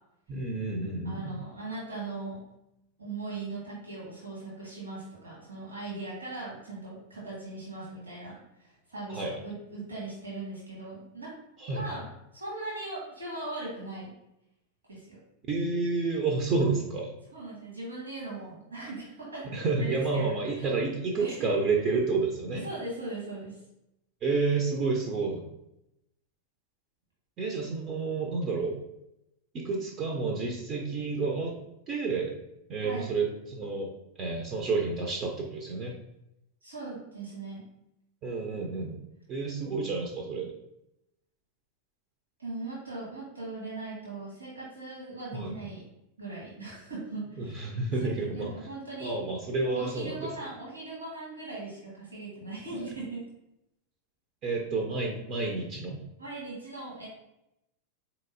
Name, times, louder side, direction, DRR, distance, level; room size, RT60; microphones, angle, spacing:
voice 1, 0.3-1.3 9.1-9.3 11.6-11.8 15.5-17.1 19.5-22.7 24.2-25.5 27.4-28.7 29.5-31.6 31.9-32.3 32.7-33.9 34.2-35.9 38.2-39.0 39.3-40.5 45.3-45.6 47.4-48.5 49.0-50.3 52.7-52.9 54.4-56.0, right 3 dB, 35° right, 0 dB, 0.5 m, -30 dB
voice 2, 1.0-2.4 3.0-11.3 11.7-14.1 14.9-15.2 17.3-20.7 21.2-21.5 22.5-23.6 32.8-33.1 36.6-37.7 42.4-45.8 46.2-47.8 48.0-49.1 49.7-53.2 56.2-57.1, right 2 dB, 75° right, -6 dB, 1.4 m, -39 dB
4.0 x 2.9 x 2.5 m, 0.85 s
figure-of-eight pair, 90°, 0 cm